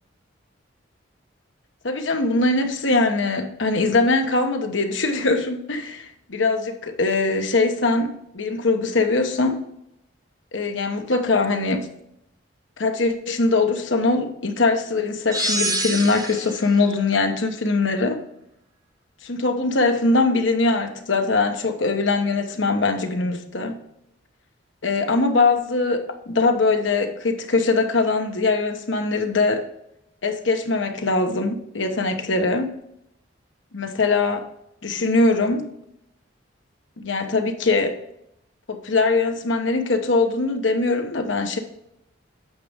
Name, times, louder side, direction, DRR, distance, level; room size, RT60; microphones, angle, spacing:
voice 1, 1.8-9.6 10.5-11.9 12.8-18.2 19.2-23.8 24.8-29.6 30.2-32.7 33.7-34.5 34.8-35.7 37.0-38.0 38.7-41.6, left 3 dB, 80° left, 1.1 m, -22 dB
sound 1, 15.3-16.7, right 1 dB, 20° right, 0.9 m, -26 dB
9.3 x 6.4 x 3.6 m
head